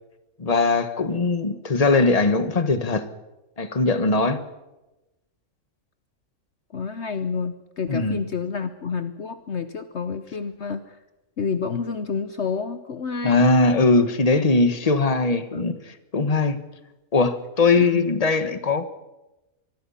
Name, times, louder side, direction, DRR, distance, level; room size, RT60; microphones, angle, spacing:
voice 1, 0.4-3.1 3.6-4.4 7.9-8.2 13.2-16.6 17.1-18.9, left 3 dB, 30° left, 10 dB, 1.4 m, -20 dB
voice 2, 6.7-11.0 11.4-13.5 15.5-15.6 17.8-18.1, left 5 dB, 55° left, 10 dB, 1.2 m, -29 dB
25.0 x 21.5 x 5.7 m, 1.0 s
omnidirectional pair, 1.4 m